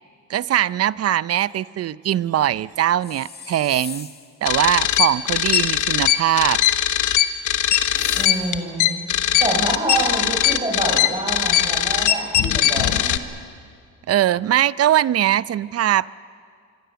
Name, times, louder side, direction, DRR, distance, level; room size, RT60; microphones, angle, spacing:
voice 1, 0.3-4.1 4.4-6.6 14.1-16.1, right 12 dB, 55° right, 19 dB, 0.6 m, -21 dB
sound 1, 3.0-4.4 7.9-8.7, left 5 dB, 30° left, 1.8 m, -37 dB
sound 2, 4.4-13.2, left 11 dB, 80° left, 1.1 m, -20 dB
voice 2, 8.2-8.9 9.4-13.2, right 2 dB, 20° right, -2 dB, 4.7 m, -26 dB
25.5 x 23.0 x 7.0 m, 2.1 s
cardioid pair, 90°, 30 cm